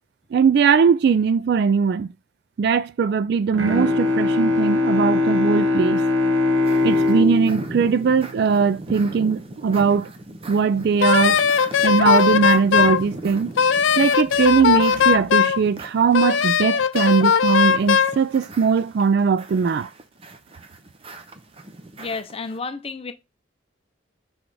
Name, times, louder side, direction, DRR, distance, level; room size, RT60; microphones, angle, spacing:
voice 1, 0.3-2.1 2.6-6.0 6.8-10.1 10.5-11.4 11.8-13.5 14.0-19.9, right 6 dB, 55° right, 0.3 m, -20 dB
Bowed string instrument, 3.5-9.2, left 2 dB, 75° right, 1.1 m, -22 dB
sound 1, 6.6-22.6, right 1 dB, 30° right, 0.7 m, -39 dB
Wind instrument woodwind instrument, 11.0-13.0 13.6-15.6 16.1-18.2, left 7 dB, 75° left, 0.4 m, -18 dB
voice 2, 22.0-23.1, left 4 dB, 30° left, 0.5 m, -31 dB
6.2 x 3.2 x 4.7 m
head